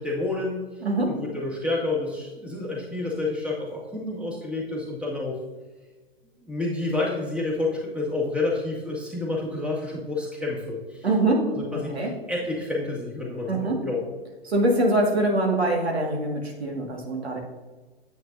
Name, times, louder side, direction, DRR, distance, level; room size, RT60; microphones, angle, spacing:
voice 1, 0.0-0.7 1.1-5.4 6.4-11.1 11.5-14.0, left 2 dB, 5° right, -3 dB, 1.9 m, -29 dB
voice 2, 0.8-1.2 11.0-12.1 13.5-13.8 14.5-17.4, right 1 dB, 80° right, 0 dB, 2.0 m, -24 dB
9.5 x 8.6 x 2.7 m, 1.3 s
figure-of-eight pair, 110°, 31 cm